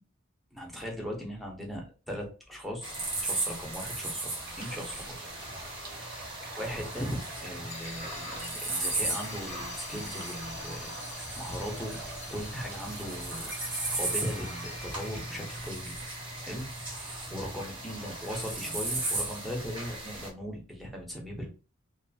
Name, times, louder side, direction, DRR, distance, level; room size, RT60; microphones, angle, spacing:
voice 1, 0.5-2.9 3.2-4.3 4.6-5.2 5.4-5.5 5.9-6.1 6.6-12.0 12.3-13.5 13.9-15.9 16.4-16.7 17.0-21.5, equal, ahead, -1 dB, 0.7 m, -38 dB
sound 1, 2.8-20.3, right 2 dB, 25° right, 0.9 m, -36 dB
sound 2, 4.4-15.7, right 3 dB, 50° right, 0.6 m, -48 dB
sound 3, 7.7-15.5, left 4 dB, 35° left, 0.4 m, -47 dB
2.6 x 2.3 x 2.7 m, 0.34 s
head